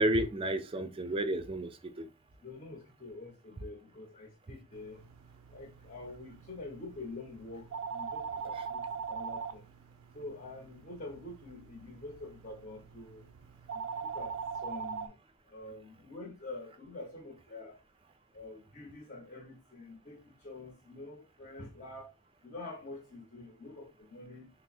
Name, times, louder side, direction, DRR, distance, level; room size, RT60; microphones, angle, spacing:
voice 1, 0.0-2.1, right 1 dB, 25° right, 0.4 m, -31 dB
voice 2, 2.4-5.0 5.5-9.6 10.1-13.2 13.7-14.3 14.6-15.1 15.5-17.8 18.3-22.1 22.4-24.5, left 2 dB, 40° left, 0.8 m, -46 dB
sound 1, 4.7-15.1, right 6 dB, 90° right, 0.4 m, -42 dB
3.3 x 2.0 x 4.2 m
head